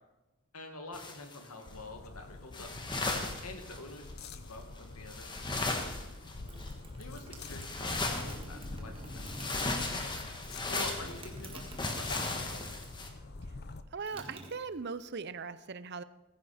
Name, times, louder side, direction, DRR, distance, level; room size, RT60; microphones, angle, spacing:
voice 1, 0.5-2.7 3.4-6.1 7.0-10.2 10.7-12.7, left 2 dB, 85° left, 5 dB, 2.1 m, -47 dB
sound 1, 0.9-1.7 2.5-4.1 4.8-4.9 5.1-6.7 7.4-8.7 9.0-13.1, left 2 dB, 20° left, 1.4 m, -36 dB
sound 2, 1.6-13.8, left 2 dB, 45° left, 0.7 m, -46 dB
sound 3, 6.4-13.0 13.3-15.2, right 1 dB, 25° right, 1.8 m, -48 dB
voice 2, 13.9-16.0, right 5 dB, 50° right, 14 dB, 0.6 m, -39 dB
15.5 x 14.5 x 4.3 m, 1.0 s
head